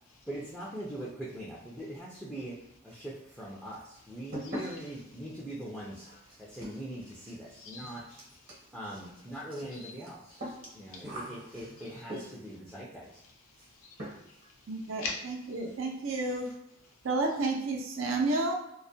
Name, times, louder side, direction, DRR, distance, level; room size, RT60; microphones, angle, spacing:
voice 1, 0.3-2.5 2.8-6.1 6.4-8.2 8.7-13.2, right 1 dB, ahead, -7 dB, 0.4 m, -42 dB
sound 1, 2.9-3.4 3.7-12.6 13.6-13.7 14.0-14.5 14.7-14.8 15.2-15.3 15.6-15.8 16.1-16.6, equal, 45° right, 0.8 m, -44 dB
voice 2, 4.4-4.8 6.4-6.6 7.5-8.6 9.7-9.9 10.5-11.0 11.8-11.9 13.5-15.2, left 4 dB, 80° left, 0 dB, 0.6 m, -45 dB
voice 3, 14.7-16.5 17.0-18.5, right 2 dB, 70° right, 1 dB, 0.5 m, -31 dB
2.2 x 2.1 x 2.6 m, 0.83 s
head